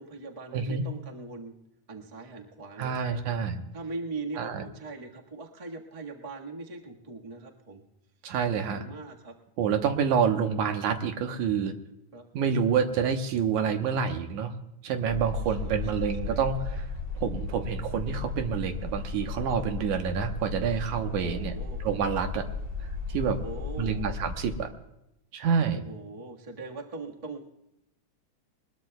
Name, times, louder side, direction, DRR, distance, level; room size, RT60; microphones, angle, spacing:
voice 1, 0.0-1.5 1.9-3.2 3.7-7.8 8.6-9.3 12.1-12.2 15.6-16.4 21.0-21.8 23.4-24.1 25.7-27.4, right 3 dB, 30° right, 0 dB, 0.6 m, -41 dB
voice 2, 0.5-0.8 2.8-3.6 4.4-4.6 8.2-8.9 9.6-11.8 12.3-14.5 14.8-16.9 17.2-21.5 21.8-22.5 23.1-23.4 23.8-24.7 25.3-25.8, right 7 dB, 75° right, 6 dB, 2.4 m, -28 dB
sound 1, 15.1-24.6, left 3 dB, 10° right, 3.3 m, -35 dB
21.5 x 21.0 x 2.3 m, 0.84 s
omnidirectional pair, 3.6 m